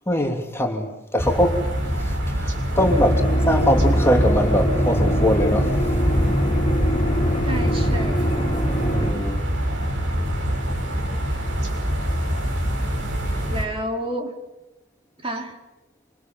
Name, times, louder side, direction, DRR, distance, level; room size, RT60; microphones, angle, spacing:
voice 1, 0.1-1.6 2.0-5.7 8.8-9.5, equal, 15° left, 3.3 m, -22 dB
sound 1, 1.2-13.6, equal, 75° right, 7.0 m, -24 dB
sound 2, 2.8-9.1, equal, 30° left, 4.4 m, -24 dB
voice 2, 7.4-8.3 13.5-14.3 15.2-15.6, right 1 dB, 30° right, 4.0 m, -30 dB
28.0 x 26.5 x 7.8 m
head